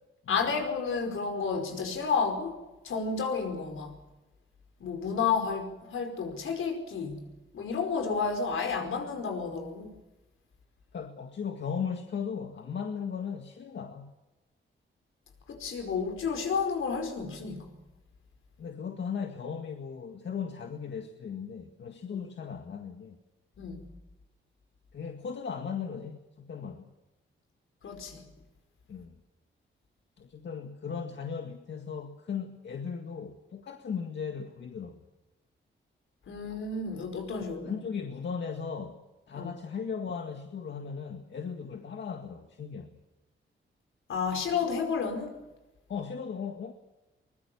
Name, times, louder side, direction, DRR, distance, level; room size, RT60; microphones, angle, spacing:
voice 1, 0.3-3.9 4.8-7.3 7.5-9.9 15.5-17.7 22.1-22.2 23.6-23.9 27.8-28.2 36.3-37.7 39.3-39.5 44.1-45.4, left 5 dB, 75° left, 5.0 m, -31 dB
voice 2, 10.9-14.1 18.6-23.2 24.9-26.9 28.9-29.2 30.2-35.1 37.4-42.9 45.9-46.7, left 6 dB, 60° left, 1.9 m, -37 dB
23.5 x 21.5 x 7.2 m
wide cardioid pair, 125°, 21 cm